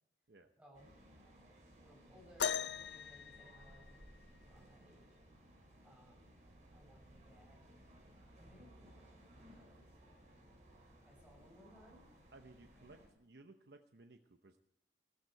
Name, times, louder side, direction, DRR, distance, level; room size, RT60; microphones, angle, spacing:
voice 1, 0.6-0.9 1.8-4.1 4.4-5.2 5.8-6.3 6.7-7.6 8.4-9.2 9.5-9.9 11.0-12.1, equal, 10° right, -1 dB, 6.4 m, -63 dB
sound 1, 0.7-13.1, right 1 dB, 45° right, 6.2 m, -61 dB
sound 2, 2.4-4.3 6.0-6.1 6.8-7.1 8.0-8.1, left 7 dB, 75° left, 0.5 m, -40 dB
voice 2, 12.3-14.6, right 2 dB, 65° right, 5 dB, 0.9 m, -59 dB
15.0 x 14.0 x 4.6 m, 0.83 s
head